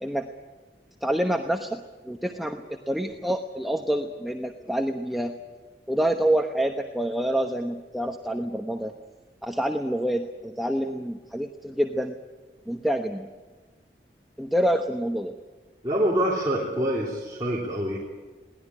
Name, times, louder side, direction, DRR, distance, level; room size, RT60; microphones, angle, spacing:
voice 1, 1.0-5.3 5.9-8.9 9.4-12.1 12.7-13.3 14.4-15.3, right 1 dB, ahead, 3 dB, 1.0 m, -27 dB
voice 2, 15.8-18.0, equal, 20° right, -4 dB, 3.2 m, -25 dB
22.0 x 18.5 x 10.0 m, 1.3 s
head